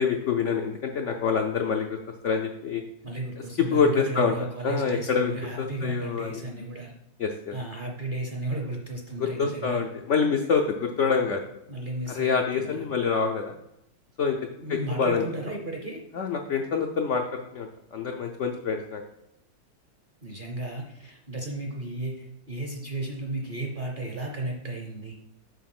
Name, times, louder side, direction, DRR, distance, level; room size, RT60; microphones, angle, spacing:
voice 1, 0.0-2.0 2.2-2.8 3.6-5.3 5.6-6.4 7.2-7.5 9.2-11.4 12.1-13.6 14.2-14.4 14.7-15.2 16.1-17.2 17.5-19.0, left 5 dB, 75° left, 4 dB, 0.6 m, -26 dB
voice 2, 3.0-6.9 7.5-9.8 11.7-12.9 14.6-16.0 20.2-25.1, right 2 dB, 45° right, 0 dB, 0.7 m, -34 dB
7.1 x 4.3 x 6.0 m, 0.84 s
omnidirectional pair, 2.0 m